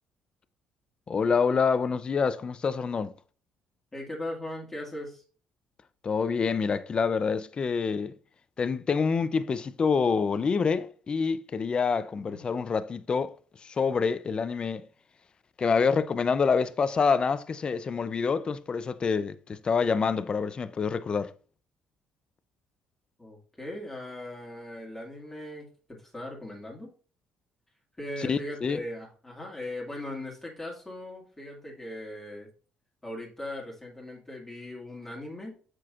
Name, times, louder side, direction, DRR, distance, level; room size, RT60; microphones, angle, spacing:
voice 1, 1.1-3.1 6.0-8.1 8.6-13.3 13.6-14.8 15.6-21.3 28.2-28.8, left 5 dB, 30° left, 0.5 m, -27 dB
voice 2, 3.9-5.2 12.1-12.4 23.2-26.9 28.0-32.5 33.0-35.6, left 1 dB, 10° left, 2.2 m, -39 dB
7.4 x 6.2 x 2.5 m
cardioid pair, 120°, 3 cm